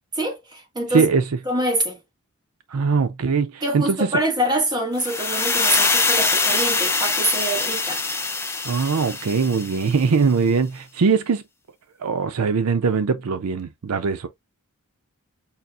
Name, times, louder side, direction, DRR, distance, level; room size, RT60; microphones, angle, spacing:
voice 1, 0.1-1.0 1.4-2.0 3.6-8.0, right 1 dB, 20° right, 1.4 m, -25 dB
voice 2, 0.9-1.4 2.7-4.2 8.6-11.4 12.0-14.3, right 5 dB, 80° right, 0.5 m, -21 dB
sound 1, 5.0-10.0, left 4 dB, 10° left, 0.4 m, -23 dB
5.6 x 2.4 x 2.4 m
head